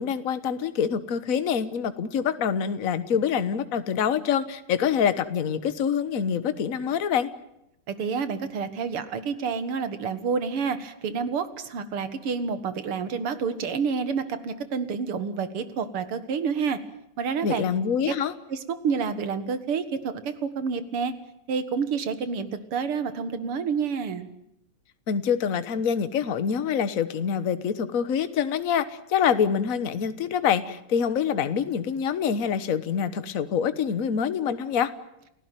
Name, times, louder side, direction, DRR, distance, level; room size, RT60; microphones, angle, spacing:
voice 1, 0.0-7.3 17.4-18.3 25.1-34.9, left 7 dB, 45° left, 12 dB, 1.4 m, -25 dB
voice 2, 7.9-16.8 17.2-17.6 18.1-18.2 18.5-21.1 21.5-24.3, right 5 dB, 85° right, 12 dB, 2.5 m, -29 dB
30.0 x 16.0 x 9.1 m, 0.82 s
omnidirectional pair, 2.4 m